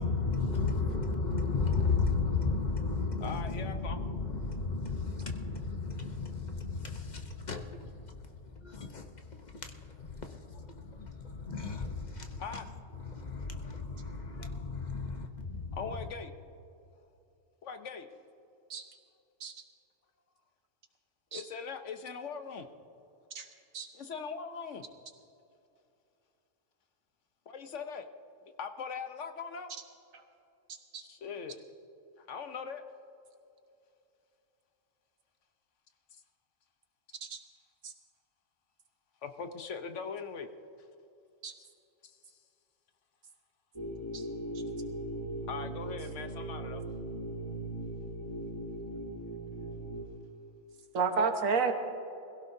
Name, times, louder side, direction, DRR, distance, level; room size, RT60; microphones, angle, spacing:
voice 1, 0.0-12.6 12.9-16.1, left 4 dB, 40° left, 1.0 m, -34 dB
voice 2, 3.2-4.0 12.4-12.7 13.6-13.8 14.4-14.5 15.7-16.3 17.6-18.1 21.3-22.7 23.9-24.8 27.5-28.1 28.5-29.7 31.0-31.6 32.3-32.8 39.2-40.5 42.0-42.2 45.5-46.8, left 5 dB, 65° left, 1.2 m, -40 dB
sound 1, 43.7-50.0, right 1 dB, 20° left, 1.6 m, -39 dB
voice 3, 50.9-51.7, right 5 dB, 90° right, 1.6 m, -30 dB
22.0 x 16.5 x 2.7 m
omnidirectional pair, 1.4 m